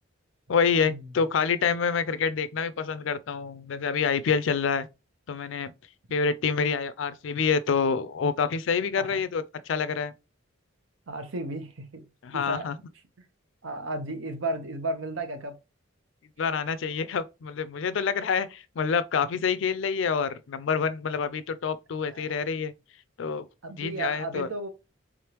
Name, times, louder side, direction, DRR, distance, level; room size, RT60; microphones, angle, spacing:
voice 1, 0.5-4.9 5.3-5.7 6.1-10.1 12.2-12.7 16.4-22.7 23.2-23.5 23.8-24.5, left 6 dB, 70° left, 0.4 m, -27 dB
voice 2, 11.1-12.0 12.3-12.7 13.6-15.6 22.1-22.2 23.6-24.7, right 2 dB, 80° right, 0.9 m, -34 dB
3.7 x 3.4 x 2.9 m
head